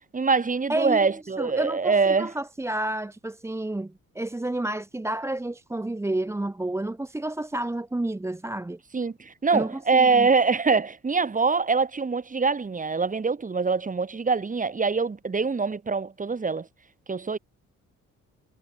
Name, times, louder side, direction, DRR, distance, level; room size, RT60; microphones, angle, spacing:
voice 1, 0.1-2.3 8.9-16.7 17.1-17.4, right 4 dB, 25° right, 2.2 m, -24 dB
voice 2, 0.7-1.1 1.4-8.8 9.5-10.3, right 1 dB, 10° right, 0.9 m, -30 dB
cardioid pair, 90°, 30 cm